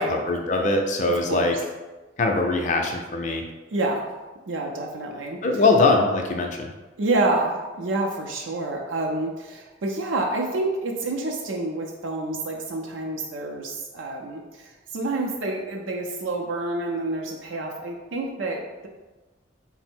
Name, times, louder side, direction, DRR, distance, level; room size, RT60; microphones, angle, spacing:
voice 1, 0.0-1.6 2.2-3.4 5.4-6.7, left 3 dB, 40° left, 3 dB, 0.5 m, -22 dB
voice 2, 1.1-1.6 3.7-4.1 4.5-5.4 7.0-18.9, right 2 dB, 75° right, 0 dB, 0.5 m, -28 dB
4.4 x 2.0 x 4.3 m, 1.2 s
head